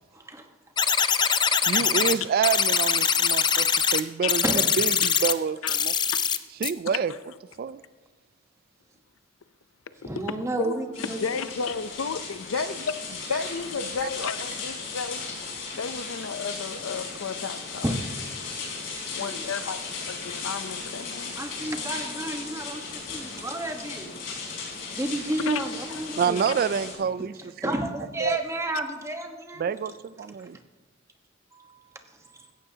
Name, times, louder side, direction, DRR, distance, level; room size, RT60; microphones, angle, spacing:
voice 1, 0.1-0.4 1.6-1.9 4.4-4.6 10.0-11.2 17.8-18.0 19.2-19.5 21.4-24.1 24.9-26.5 27.6-29.7 31.5-31.8 32.2-32.5, right 1 dB, 15° right, 4 dB, 1.1 m, -31 dB
sound 1, 0.8-2.1 2.4-4.0 4.3-5.3 5.7-6.4 6.6-6.7, left 7 dB, 20° left, 0.5 m, -23 dB
voice 2, 1.7-3.7 3.9-5.9 6.6-7.1 7.6-7.8 12.6-12.7 14.0-14.1 26.2-27.8 28.2-28.4 29.6-30.6, right 7 dB, 50° right, 15 dB, 0.3 m, -27 dB
voice 3, 5.6-6.2 6.6-7.0 10.0-10.1 10.6-15.2 15.7-17.8 19.2-19.8 20.1-21.4 25.5-25.6, left 5 dB, 90° left, 13 dB, 0.6 m, -33 dB
sound 2, 10.9-26.9, left 4 dB, 70° left, 4.7 m, -36 dB
16.5 x 14.5 x 2.8 m, 1.3 s
head